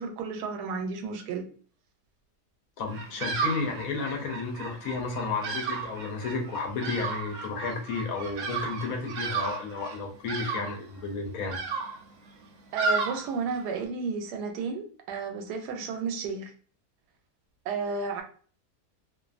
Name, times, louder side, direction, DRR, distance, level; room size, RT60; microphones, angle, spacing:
voice 1, 0.0-1.4 12.7-16.5 17.7-18.2, right 5 dB, 90° right, 1.1 m, -32 dB
voice 2, 2.8-11.6, left 4 dB, 70° left, 1.0 m, -32 dB
Bird vocalization bird call bird song, 2.9-13.8, right 4 dB, 65° right, 0.8 m, -34 dB
2.5 x 2.5 x 2.3 m
omnidirectional pair, 1.7 m